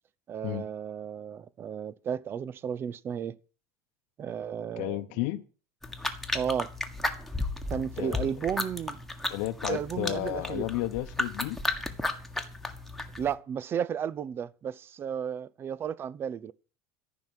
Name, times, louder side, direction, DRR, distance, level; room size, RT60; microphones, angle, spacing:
voice 1, 0.3-3.4 4.2-5.3 6.3-6.7 7.7-9.0 9.7-10.7 13.2-16.5, right 8 dB, 30° right, 0.7 m, -33 dB
voice 2, 4.8-5.4 8.0-8.3 9.3-11.6, left 17 dB, 70° left, 1.0 m, -32 dB
sound 1, 5.8-13.3, left 2 dB, 5° left, 1.6 m, -34 dB
14.0 x 5.9 x 9.0 m
supercardioid pair, 125°, 7 cm